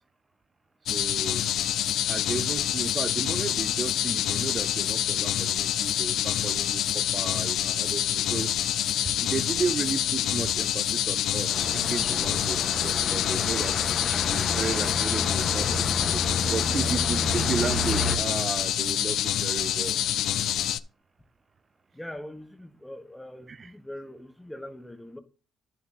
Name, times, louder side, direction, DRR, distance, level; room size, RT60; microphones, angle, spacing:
sound 1, 0.9-20.8, left 11 dB, 80° left, 0.4 m, -27 dB
voice 1, 0.9-1.4 2.1-8.5 9.2-13.7 14.3-16.2 16.5-20.0 23.5-23.7, right 5 dB, 40° right, 0.4 m, -34 dB
sound 2, 11.5-18.2, left 3 dB, 50° left, 1.4 m, -30 dB
voice 2, 21.9-25.2, left 1 dB, 5° left, 1.2 m, -42 dB
10.0 x 7.1 x 2.9 m
cardioid pair, 90°, 0 cm